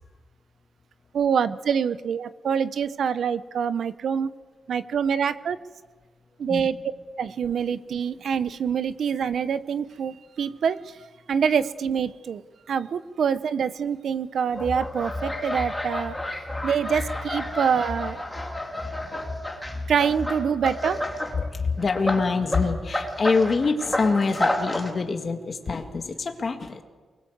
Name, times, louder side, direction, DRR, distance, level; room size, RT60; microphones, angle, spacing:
voice 1, 1.1-4.3 4.7-5.6 6.4-6.8 7.2-11.0 11.3-12.4 12.7-16.2 16.6-18.2 19.9-21.0, right 7 dB, 60° right, 14 dB, 0.8 m, -25 dB
sound 1, 14.5-21.3 21.7-24.9, left 1 dB, 5° left, 2.5 m, -30 dB
voice 2, 21.3-26.8, left 4 dB, 35° left, 5 dB, 1.8 m, -25 dB
24.5 x 21.0 x 8.0 m, 1.4 s
wide cardioid pair, 175°, 0 cm